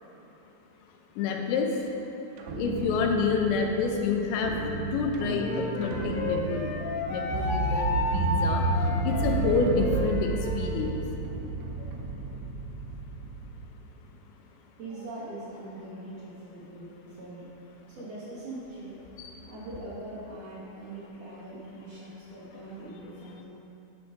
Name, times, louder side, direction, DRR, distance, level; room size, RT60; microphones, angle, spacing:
voice 1, 1.2-1.7 2.5-4.5 4.9-8.6 9.0-11.0 19.2-19.3, left 5 dB, 85° left, 2 dB, 2.8 m, -28 dB
sound 1, 2.4-13.7, right 3 dB, 85° right, 2.8 m, -32 dB
Wind instrument woodwind instrument, 5.4-10.7, left 3 dB, 65° left, 2.7 m, -32 dB
voice 2, 14.8-17.5 17.9-19.0 19.5-23.4, right 2 dB, 55° right, -11 dB, 2.8 m, -42 dB
11.0 x 6.8 x 2.6 m, 2.9 s
omnidirectional pair, 5.1 m